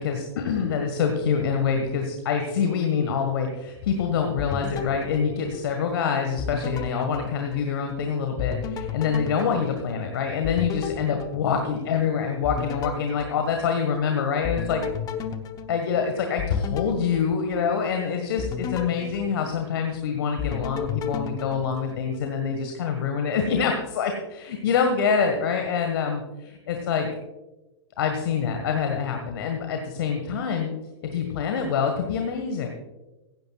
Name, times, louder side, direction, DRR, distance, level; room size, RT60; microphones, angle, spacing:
voice 1, 0.0-14.8 15.7-27.1 28.0-30.7 31.0-32.7, left 6 dB, 55° left, 4 dB, 1.6 m, -26 dB
sound 1, 4.4-6.0 6.4-8.0 8.4-12.0 12.4-14.0 14.4-17.9 18.4-20.0 20.4-22.3, left 7 dB, 25° left, 1.0 m, -34 dB
16.5 x 15.5 x 2.4 m, 1.1 s
figure-of-eight pair, 110°, 15 cm